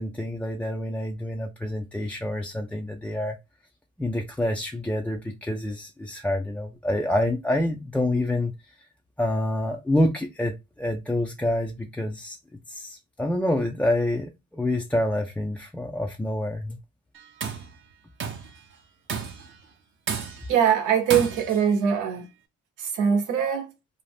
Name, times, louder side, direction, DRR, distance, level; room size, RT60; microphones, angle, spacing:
voice 1, 0.0-3.4 4.0-8.5 9.2-12.4 12.7-16.8, left 1 dB, 5° left, 0.3 m, -27 dB
Tools, 17.2-17.7 18.2-18.6 19.1-19.5 20.1-20.6 21.1-21.7, right 6 dB, 40° right, 0.6 m, -32 dB
voice 2, 20.5-22.3 22.8-23.7, right 8 dB, 90° right, 0.8 m, -22 dB
2.6 x 2.0 x 3.2 m
cardioid pair, 90°, 30 cm